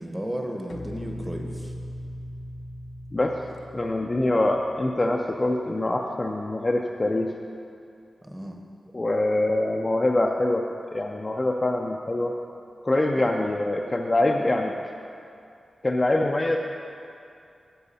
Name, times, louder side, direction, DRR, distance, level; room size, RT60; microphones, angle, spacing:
voice 1, 0.0-1.7 8.2-8.6 13.2-13.3, equal, 10° right, 2 dB, 0.7 m, -34 dB
sound 1, 0.7-5.9, left 1 dB, 60° left, 0.6 m, -40 dB
voice 2, 3.7-7.3 8.9-12.3 12.8-14.7 15.8-16.6, left 2 dB, 20° left, 1 dB, 0.4 m, -24 dB
10.0 x 7.9 x 4.1 m, 2.6 s
wide cardioid pair, 175°, 0 cm